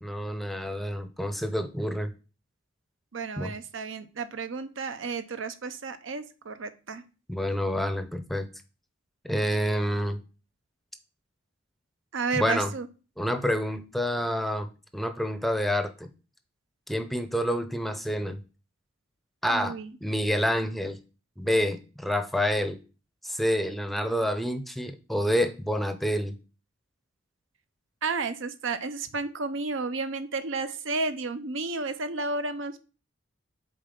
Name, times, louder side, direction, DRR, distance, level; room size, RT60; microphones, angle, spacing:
voice 1, 0.0-2.1 3.4-3.5 7.3-8.5 9.2-10.2 12.4-12.7 13.2-16.1 16.9-18.4 19.4-19.8 20.0-21.0 21.4-22.8 23.2-26.3, equal, ahead, 8 dB, 0.6 m, -28 dB
voice 2, 3.1-7.0 12.1-12.9 19.5-19.9 28.0-32.8, right 4 dB, 75° right, 11 dB, 0.7 m, -32 dB
6.7 x 4.3 x 3.8 m, 0.34 s
head